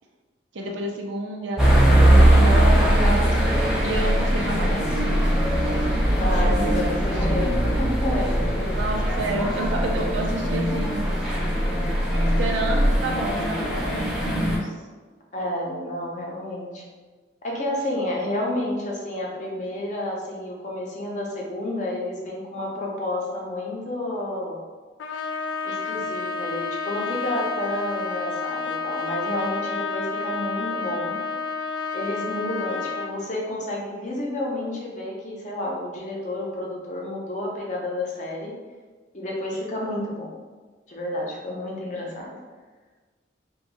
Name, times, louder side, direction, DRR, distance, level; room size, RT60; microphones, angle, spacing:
voice 1, 0.5-5.3 6.2-7.4 8.7-11.1 12.4-14.7, right 2 dB, 80° right, 1 dB, 0.5 m, -30 dB
sound 1, 1.6-14.6, right 1 dB, 5° right, 0.5 m, -20 dB
voice 2, 6.2-8.8 15.3-16.8 17.4-24.6 25.6-31.2 31.9-38.5 39.1-40.3 40.9-42.3, left 1 dB, 40° left, -2 dB, 0.6 m, -30 dB
Trumpet, 25.0-33.2, left 4 dB, 85° left, 0.3 m, -30 dB
2.6 x 2.3 x 4.0 m, 1.4 s
head